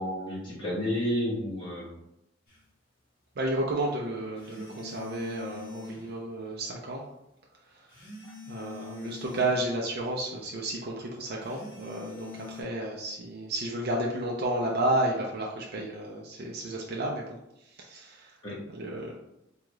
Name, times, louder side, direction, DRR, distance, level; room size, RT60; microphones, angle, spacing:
voice 1, 0.0-2.0 18.4-18.6, left 1 dB, 25° left, -7 dB, 1.3 m, -31 dB
sound 1, 2.5-2.6 4.4-6.1 7.9-9.6 11.4-12.6, left 5 dB, 50° left, 1.3 m, -44 dB
voice 2, 3.4-7.0 7.7-7.9 8.5-17.4 17.6-18.4 18.7-19.1, right 1 dB, 55° right, -2 dB, 0.5 m, -32 dB
3.5 x 2.3 x 3.0 m, 0.86 s
head